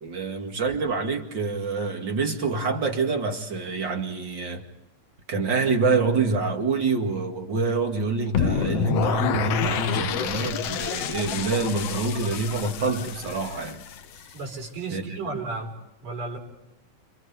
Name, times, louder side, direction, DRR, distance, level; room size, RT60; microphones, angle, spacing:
voice 1, 0.0-4.6 5.3-13.8 14.9-15.2, right 4 dB, 40° right, 2.5 m, -26 dB
sound 1, 8.3-14.4, left 8 dB, 65° left, 1.8 m, -28 dB
voice 2, 14.3-15.7 16.0-16.4, right 3 dB, 90° right, 6.7 m, -33 dB
29.5 x 29.0 x 3.6 m
omnidirectional pair, 3.6 m